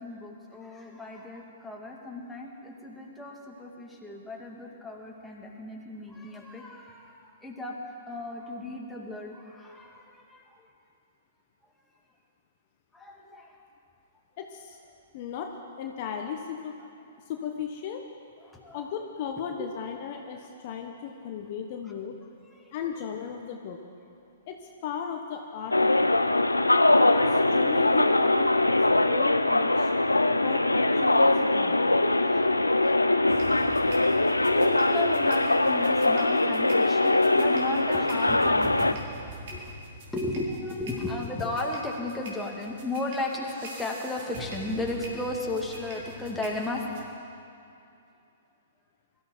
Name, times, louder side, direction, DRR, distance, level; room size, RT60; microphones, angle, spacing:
voice 1, 0.0-7.8 8.1-10.4 12.9-13.6 18.5-18.8 22.6-22.7 28.9-29.0 32.1-33.2 33.6-39.0 39.2-39.8 40.1-46.8, left 2 dB, 5° left, -2 dB, 2.3 m, -35 dB
voice 2, 14.4-14.8 15.1-15.5 15.8-16.7 17.3-18.0 18.7-22.2 22.7-23.8 24.5-24.6 24.8-26.1 27.1-28.5 29.1-29.9 30.3-31.8, left 7 dB, 45° left, 3 dB, 1.2 m, -36 dB
sound 1, 25.7-38.9, left 2 dB, 85° left, 0.6 m, -22 dB
sound 2, 33.3-47.0, equal, 50° right, 3.8 m, -43 dB
23.0 x 13.5 x 4.6 m, 2.6 s
figure-of-eight pair, 115°, 0 cm